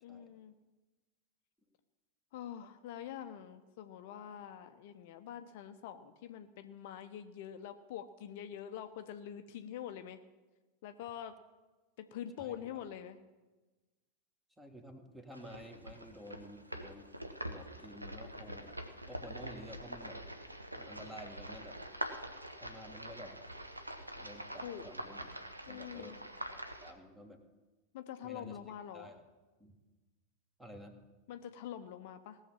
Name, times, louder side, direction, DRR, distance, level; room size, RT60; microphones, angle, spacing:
voice 1, 0.0-0.5 2.3-10.2 10.8-11.4 12.0-13.2 24.6-24.9 25.7-26.2 27.9-29.1 31.3-32.4, left 10 dB, 50° left, 8 dB, 0.7 m, -45 dB
voice 2, 12.4-12.8 14.6-17.1 17.4-18.8 19.1-20.2 20.8-21.8 22.6-23.4 24.2-25.3 25.7-26.2 26.5-27.4 28.2-29.2 29.6-29.8 30.6-31.0, equal, 5° right, 6 dB, 1.7 m, -51 dB
sound 1, 15.3-26.9, right 1 dB, 85° right, 1.0 m, -45 dB
18.0 x 6.5 x 7.4 m, 1.2 s
figure-of-eight pair, 90°, 0 cm